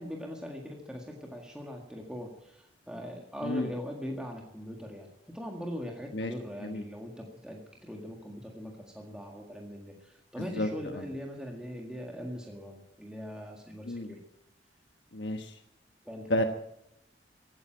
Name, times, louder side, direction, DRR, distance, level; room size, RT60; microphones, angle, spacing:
voice 1, 0.0-14.2 16.1-16.4, equal, 5° right, 0 dB, 1.8 m, -41 dB
voice 2, 15.1-15.5 16.3-16.4, left 1 dB, 75° left, 5 dB, 1.2 m, -30 dB
15.5 x 9.8 x 8.8 m, 0.82 s
head